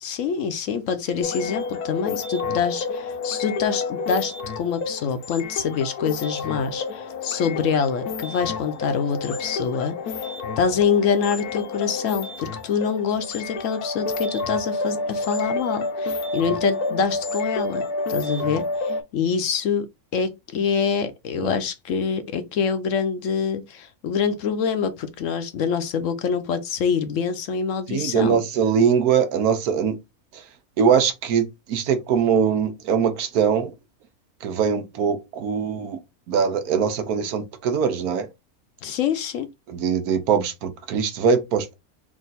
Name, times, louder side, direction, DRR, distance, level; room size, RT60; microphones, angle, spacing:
voice 1, 0.0-10.2 10.6-19.9 20.1-28.4 38.8-39.5, left 6 dB, 65° left, 0.9 m, -25 dB
sound 1, 1.2-19.0, left 3 dB, 85° left, 1.3 m, -29 dB
voice 2, 27.9-30.0 30.8-33.7 34.4-36.0 36.3-38.3 39.7-41.7, right 7 dB, 80° right, 1.2 m, -22 dB
3.6 x 2.6 x 4.0 m
omnidirectional pair, 1.6 m